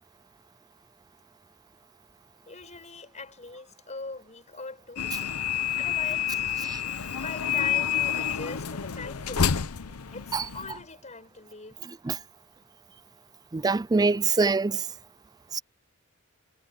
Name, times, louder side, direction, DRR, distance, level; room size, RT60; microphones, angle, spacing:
voice 1, 2.5-5.1 5.7-6.4 7.0-9.5 10.1-11.8, left 3 dB, 35° left, 6.2 m, -42 dB
sound 1, 5.0-10.8, left 8 dB, 85° left, 0.8 m, -29 dB
voice 2, 13.5-14.8 15.5-15.6, right 4 dB, 15° right, 0.4 m, -23 dB
head